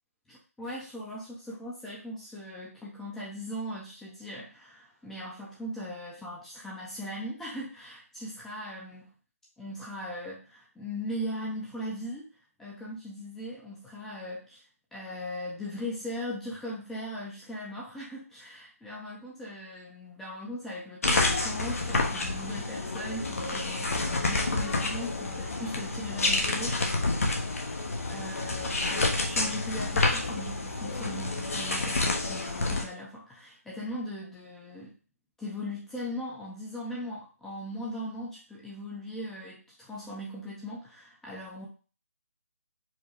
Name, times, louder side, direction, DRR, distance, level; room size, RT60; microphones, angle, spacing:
voice 1, 0.3-9.1 9.6-12.3 12.6-14.6 14.9-26.9 27.7-35.0 35.4-41.7, equal, 5° left, -5 dB, 0.6 m, -39 dB
sound 1, 21.0-32.8, left 2 dB, 65° left, 1.1 m, -29 dB
4.8 x 2.3 x 4.4 m, 0.38 s
figure-of-eight pair, 150°, 8 cm